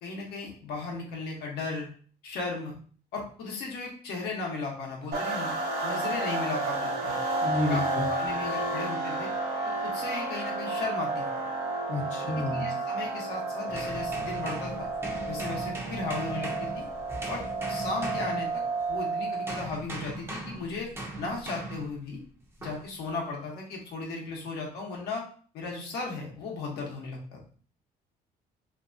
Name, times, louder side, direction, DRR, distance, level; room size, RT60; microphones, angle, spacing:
voice 1, 0.0-1.9 2.2-2.8 3.1-5.5 5.8-7.2 7.7-9.3 9.8-11.2 12.2-14.9 15.3-16.8 17.3-18.6 18.9-22.2 22.6-25.2 25.5-27.4, left 3 dB, 75° left, -1 dB, 0.9 m, -36 dB
sound 1, 5.1-19.7, right 2 dB, 80° right, 0.7 m, -31 dB
voice 2, 7.4-8.1 11.9-12.7, left 1 dB, 45° left, -1 dB, 0.6 m, -30 dB
sound 2, 13.7-19.0 19.5-22.0 22.6-22.9, right 2 dB, 15° right, 0.6 m, -39 dB
2.6 x 2.3 x 2.5 m, 0.43 s
cardioid pair, 110°, 17 cm